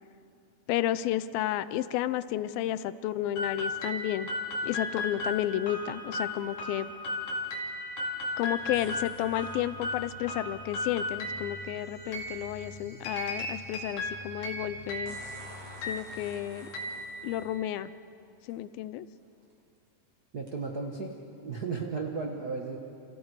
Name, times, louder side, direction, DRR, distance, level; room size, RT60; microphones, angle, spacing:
voice 1, 0.7-4.3 4.6-6.9 8.4-15.2 15.9-16.7 17.2-17.9 18.5-19.1, left 13 dB, 90° left, 15 dB, 2.5 m, -32 dB
sound 1, 3.4-17.8, left 1 dB, 55° left, 3.5 m, -36 dB
sound 2, 8.6-17.7, left 2 dB, 10° right, 3.5 m, -50 dB
sound 3, 8.7-9.6 11.6-11.7 15.1-17.5 18.5-18.6 19.2-19.5 20.5-20.6, right 1 dB, 40° right, 4.7 m, -50 dB
voice 2, 20.3-21.2 21.4-22.8, right 4 dB, 80° right, 1 dB, 0.8 m, -34 dB
30.0 x 27.5 x 4.8 m, 2.7 s
omnidirectional pair, 4.1 m